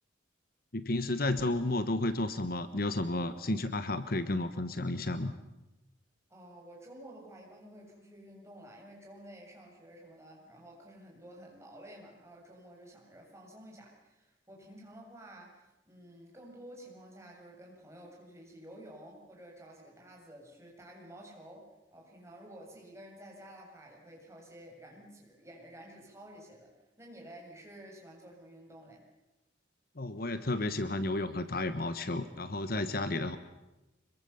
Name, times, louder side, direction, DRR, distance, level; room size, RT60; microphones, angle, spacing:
voice 1, 0.7-5.3 30.0-33.4, left 2 dB, 55° left, 11 dB, 1.3 m, -32 dB
voice 2, 6.3-26.7 27.0-29.1, right 1 dB, 15° right, -1 dB, 7.3 m, -51 dB
26.0 x 23.0 x 7.1 m, 0.99 s
head